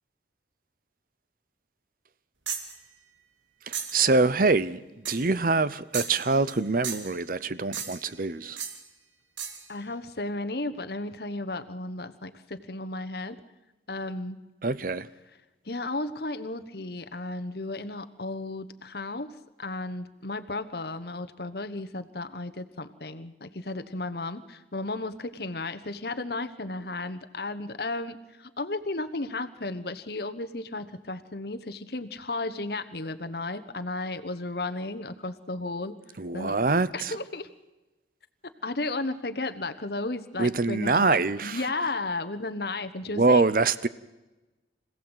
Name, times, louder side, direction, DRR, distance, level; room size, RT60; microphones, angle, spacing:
sound 1, 2.5-2.8 3.7-4.0 5.1-5.3 5.9-6.6 6.8-7.2 7.7-8.1 8.6-8.8 9.4-9.7, right 7 dB, 90° right, 2.6 m, -35 dB
voice 1, 3.7-8.6 14.6-15.1 36.2-37.2 40.4-41.7 43.1-43.9, right 3 dB, 50° right, 0.8 m, -25 dB
voice 2, 9.7-13.4 13.9-14.4 15.6-19.3 19.6-36.0 36.3-36.6 36.9-37.5 38.6-43.5, left 2 dB, 55° left, 1.2 m, -34 dB
26.0 x 16.5 x 8.0 m
head